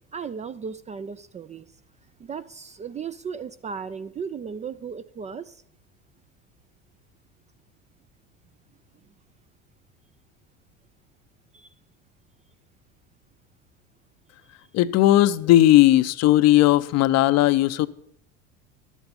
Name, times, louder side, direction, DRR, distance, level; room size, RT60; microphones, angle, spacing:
voice 1, 0.1-1.7 2.2-5.6 11.5-11.7, right 6 dB, 20° right, 0.3 m, -36 dB
voice 2, 14.7-17.9, left 14 dB, 50° left, 0.6 m, -17 dB
12.0 x 8.2 x 5.2 m
hypercardioid pair, 80°, 34 cm